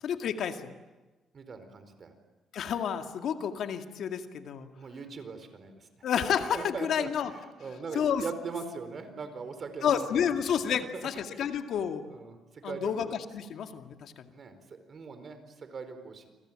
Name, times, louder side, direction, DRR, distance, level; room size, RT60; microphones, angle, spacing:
voice 1, 0.0-0.7 2.5-4.7 6.0-7.3 7.9-8.3 9.8-12.0 12.6-13.1 13.3-14.3, left 8 dB, 70° left, 6 dB, 2.2 m, -30 dB
voice 2, 1.3-2.1 4.8-5.9 6.5-10.2 10.9-11.4 12.1-12.9 14.3-16.3, right 4 dB, 45° right, 9 dB, 4.5 m, -41 dB
28.5 x 23.5 x 9.0 m, 1.2 s
cardioid pair, 90°, 0 cm